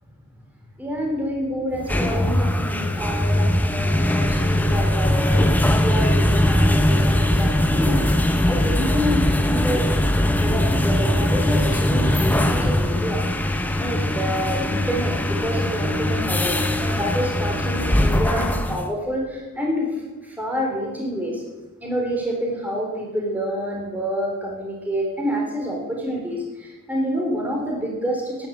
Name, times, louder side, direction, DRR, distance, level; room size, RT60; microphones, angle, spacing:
voice 1, 0.8-8.1 8.5-9.9 10.2-13.2 13.7-19.9 20.2-21.4 21.8-28.5, equal, 5° right, -1 dB, 3.8 m, -28 dB
sound 1, 1.7-18.9, left 1 dB, 10° left, 1.0 m, -20 dB
15.0 x 10.5 x 8.1 m, 1.1 s
head